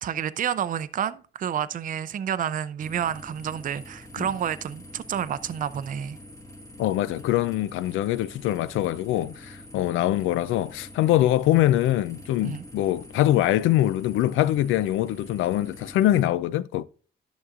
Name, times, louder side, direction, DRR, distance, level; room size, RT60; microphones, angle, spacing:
voice 1, 0.0-6.2 12.4-12.6, right 9 dB, 45° right, 0.5 m, -29 dB
sound 1, 2.8-16.3, left 1 dB, 15° left, 1.4 m, -45 dB
voice 2, 6.8-16.8, left 13 dB, 85° left, 0.4 m, -23 dB
11.0 x 6.3 x 2.4 m
cardioid pair, 90°, 20 cm